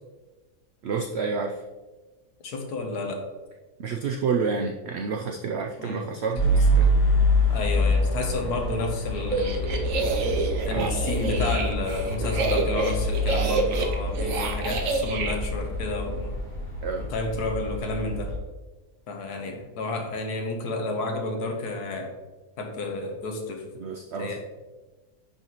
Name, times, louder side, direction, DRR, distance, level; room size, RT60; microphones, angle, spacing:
voice 1, 0.8-1.6 3.8-6.9 10.7-10.9 16.8-17.1 23.8-24.4, right 5 dB, 85° right, 2 dB, 0.5 m, -29 dB
voice 2, 2.4-3.3 5.8-6.1 6.8-6.9 7.5-10.0 10.6-16.3 17.0-18.3 19.1-22.1 22.6-23.7 24.2-24.4, left 2 dB, 80° left, 3 dB, 1.5 m, -31 dB
sound 1, 6.4-18.4, equal, 50° left, 1.9 m, -26 dB
sound 2, 9.2-15.3, right 3 dB, 60° right, 1.1 m, -28 dB
10.5 x 4.0 x 3.0 m, 1.2 s
omnidirectional pair, 1.7 m